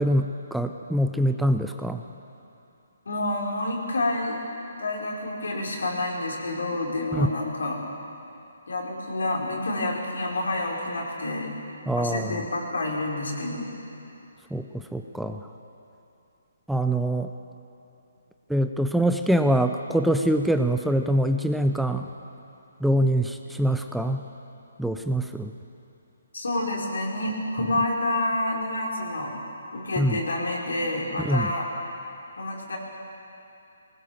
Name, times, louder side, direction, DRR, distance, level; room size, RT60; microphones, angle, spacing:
voice 1, 0.0-2.0 7.1-7.3 11.9-12.3 14.5-15.5 16.7-17.3 18.5-22.1 22.8-24.2 24.8-25.5 30.0-30.2 31.2-31.5, right 1 dB, ahead, 6 dB, 0.6 m, -24 dB
voice 2, 3.0-4.4 4.8-7.8 8.7-11.5 12.0-13.7 26.3-29.4 29.7-31.7 32.4-32.8, left 2 dB, 80° left, -1 dB, 5.1 m, -28 dB
20.0 x 19.5 x 7.4 m, 2.8 s
hypercardioid pair, 155°, 0 cm